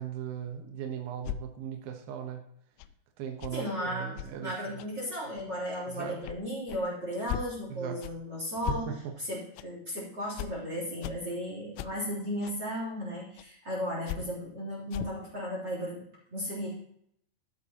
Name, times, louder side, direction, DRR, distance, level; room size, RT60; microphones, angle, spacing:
voice 1, 0.0-2.4 3.2-4.8 5.9-6.2 7.7-8.0 8.7-9.0, right 8 dB, 80° right, 4 dB, 2.1 m, -38 dB
sound 1, 1.2-1.4 2.8-2.9 3.4-3.5 4.2-4.3 4.8-4.9 5.4-5.5 6.2-6.4 6.7-6.8 7.3-7.5 8.0-8.1 8.6-8.8 9.6-9.7 10.4-10.5 11.0-11.2 11.8-11.9 12.4-12.5 13.4-13.5 14.1-14.2 14.9-15.2, left 13 dB, 85° left, 3.0 m, -36 dB
voice 2, 3.5-4.1 4.4-16.7, equal, 25° right, -4 dB, 3.0 m, -35 dB
12.5 x 11.0 x 2.9 m, 0.70 s
omnidirectional pair, 5.8 m